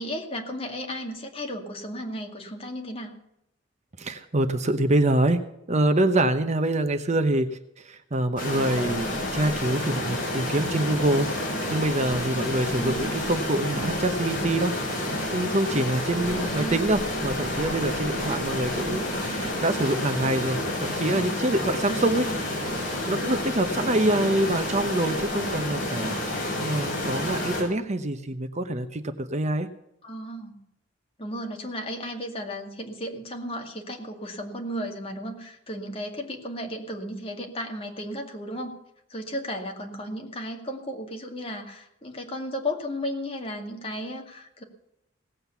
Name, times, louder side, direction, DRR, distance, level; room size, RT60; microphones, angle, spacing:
voice 1, 0.0-3.2 12.8-13.0 16.3-17.0 21.9-22.4 30.0-30.6 31.2-38.8 39.1-44.6, equal, 30° left, 2 dB, 2.2 m, -34 dB
voice 2, 4.0-5.4 5.7-22.2 23.1-29.7, right 1 dB, 40° right, 9 dB, 0.9 m, -26 dB
sound 1, 8.4-27.6, left 1 dB, 45° left, 5.5 m, -29 dB
17.5 x 7.9 x 6.9 m, 0.83 s
head